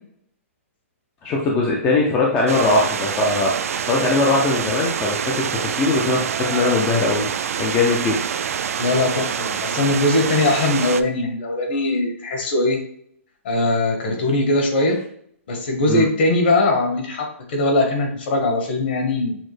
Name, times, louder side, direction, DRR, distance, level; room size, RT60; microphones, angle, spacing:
voice 1, 1.2-3.5 3.8-7.3 7.6-8.2 15.9-16.1, left 3 dB, 10° left, -2 dB, 0.3 m, -20 dB
sound 1, 2.5-11.0, right 7 dB, 75° right, 0.3 m, -26 dB
voice 2, 8.8-12.8 13.4-15.0 15.5-19.4, left 2 dB, 45° left, 2 dB, 1.1 m, -20 dB
6.2 x 2.1 x 3.2 m, 0.66 s
hypercardioid pair, 175°, 8 cm